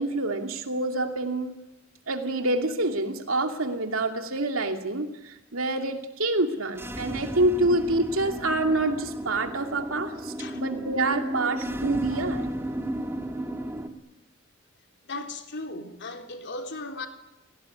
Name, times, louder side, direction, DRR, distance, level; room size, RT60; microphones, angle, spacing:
voice 1, 0.0-1.6 2.1-12.4, right 2 dB, 85° right, 2.6 m, -27 dB
sound 1, 6.7-13.9, right 1 dB, 10° right, 1.9 m, -34 dB
voice 2, 15.1-17.1, left 3 dB, 60° left, 3.7 m, -36 dB
29.5 x 18.0 x 9.7 m
head